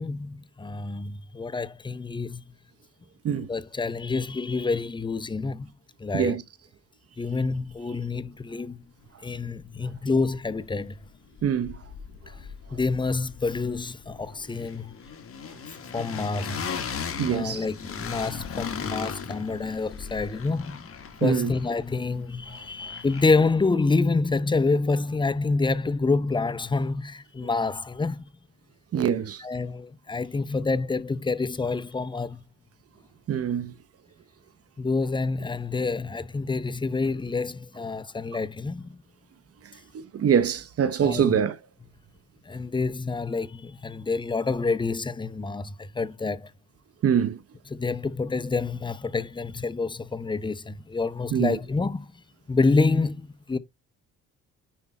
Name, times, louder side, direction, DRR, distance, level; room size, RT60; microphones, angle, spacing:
voice 1, 0.0-2.4 3.3-5.7 6.0-6.4 7.2-8.8 9.2-11.0 12.7-14.9 15.9-16.7 17.3-20.8 21.2-28.3 29.4-32.4 34.8-39.0 41.0-41.4 42.5-46.5 47.7-52.1 52.5-53.6, left 3 dB, 15° left, 0.7 m, -27 dB
sound 1, 9.6-9.7 9.9-11.1 11.3-23.6, left 6 dB, 50° left, 1.9 m, -38 dB
voice 2, 11.4-11.8 17.2-17.6 21.2-21.5 28.9-29.4 33.3-33.7 39.9-41.6 47.0-47.4 51.3-51.6, right 8 dB, 50° right, 0.9 m, -24 dB
10.0 x 3.4 x 4.2 m
cardioid pair, 90°, 30 cm